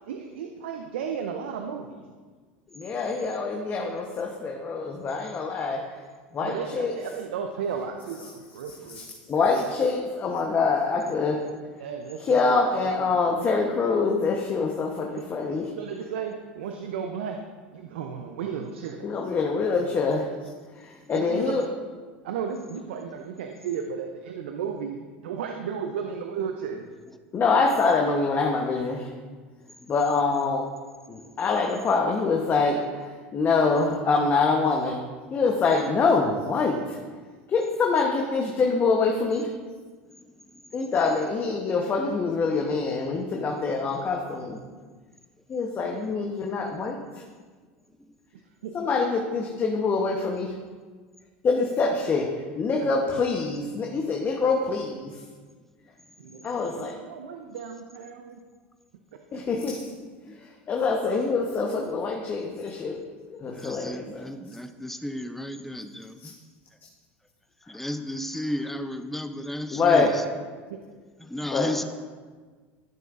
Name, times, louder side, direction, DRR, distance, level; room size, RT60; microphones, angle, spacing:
voice 1, 0.0-2.1 6.4-9.1 11.8-13.2 15.2-15.3 15.7-17.4 17.7-19.1 21.1-21.6 22.2-26.9 48.6-48.7 52.8-53.0 56.2-58.4 70.7-70.8, right 7 dB, 80° right, 4 dB, 0.6 m, -34 dB
voice 2, 2.7-5.9 6.3-6.9 8.9-11.4 12.2-15.6 19.0-20.3 20.8-21.7 27.3-29.1 29.9-30.7 31.1-35.0 35.3-37.0 37.5-39.5 40.7-44.6 45.5-47.0 48.7-50.5 51.4-52.3 52.5-55.1 56.4-56.9 59.3-59.9 60.7-63.0 63.3-64.3 66.2-66.3 69.7-70.1 71.5-71.7, left 4 dB, 35° left, 1 dB, 1.0 m, -25 dB
voice 3, 40.0-40.9 48.0-48.1 60.3-60.4 63.5-66.3 67.7-70.2 71.2-71.8, left 1 dB, 5° left, 8 dB, 0.6 m, -34 dB
12.0 x 6.8 x 2.5 m, 1.4 s
hypercardioid pair, 85°, 6 cm